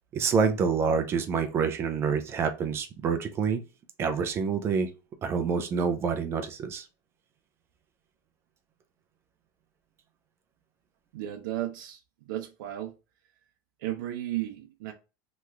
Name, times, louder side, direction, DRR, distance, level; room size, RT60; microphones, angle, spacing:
voice 1, 0.1-3.6 4.0-4.9 5.2-6.9, right 6 dB, 25° right, 0.4 m, -27 dB
voice 2, 11.1-12.0 12.3-12.9 13.8-14.9, right 13 dB, 80° right, 0.6 m, -34 dB
2.9 x 2.3 x 3.1 m
supercardioid pair, 165°, 11 cm